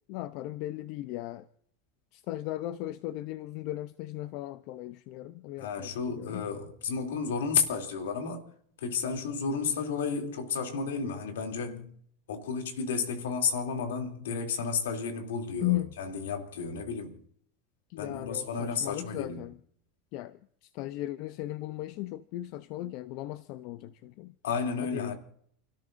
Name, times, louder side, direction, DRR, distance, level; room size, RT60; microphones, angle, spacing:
voice 1, 0.1-1.5 2.1-6.5 15.6-15.9 17.9-19.6 20.1-24.3 24.9-25.2, left 16 dB, 60° left, 0.7 m, -36 dB
voice 2, 5.6-8.5 8.8-11.9 12.3-17.2 18.0-19.4 24.4-25.2, left 5 dB, 90° left, 3.0 m, -32 dB
29.5 x 13.5 x 2.7 m
supercardioid pair, 110°, 0 cm